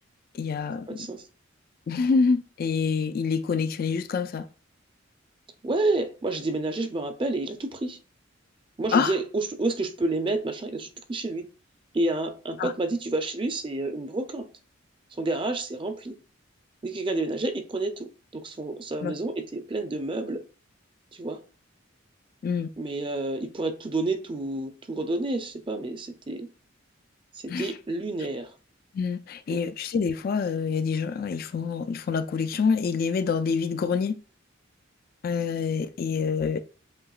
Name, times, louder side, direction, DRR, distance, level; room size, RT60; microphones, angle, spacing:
voice 1, 0.3-1.1 1.9-4.5 8.9-9.2 12.6-12.7 19.0-19.1 22.4-22.7 27.5-27.8 28.9-34.2 35.2-36.6, left 5 dB, 45° left, 0.3 m, -26 dB
voice 2, 0.9-1.2 5.6-8.0 8.8-11.4 11.9-14.5 15.2-16.2 16.8-20.4 21.1-21.4 22.8-26.5 27.4-28.5 29.5-29.6, right 2 dB, 25° right, 0.5 m, -29 dB
7.6 x 2.9 x 2.4 m
head